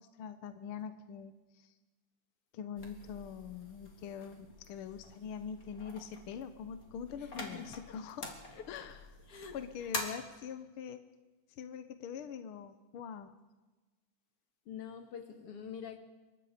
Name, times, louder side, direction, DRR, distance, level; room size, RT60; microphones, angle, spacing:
voice 1, 0.0-1.7 2.5-8.4 8.7-9.0 9.3-11.0 11.5-13.3, left 7 dB, 65° left, 9 dB, 1.3 m, -44 dB
sound 1, 2.8-10.0, left 2 dB, 30° left, 3.0 m, -46 dB
voice 2, 7.2-7.7 8.5-8.7 9.3-9.9 14.7-16.0, left 7 dB, 50° left, 5 dB, 2.8 m, -46 dB
26.5 x 23.5 x 5.1 m, 1.2 s
omnidirectional pair, 3.6 m